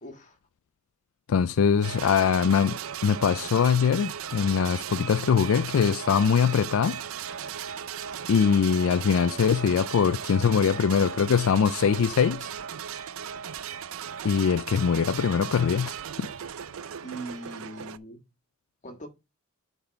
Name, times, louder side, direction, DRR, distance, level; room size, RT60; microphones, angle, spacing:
voice 1, 0.0-0.4 17.0-18.2 18.8-19.1, right 1 dB, 35° left, 1.7 m, -40 dB
voice 2, 1.3-7.0 8.3-12.5 14.2-15.9 16.2-16.3, left 6 dB, 70° left, 0.4 m, -22 dB
sound 1, 1.8-18.0, right 8 dB, 70° right, 0.5 m, -37 dB
10.5 x 4.1 x 4.4 m
head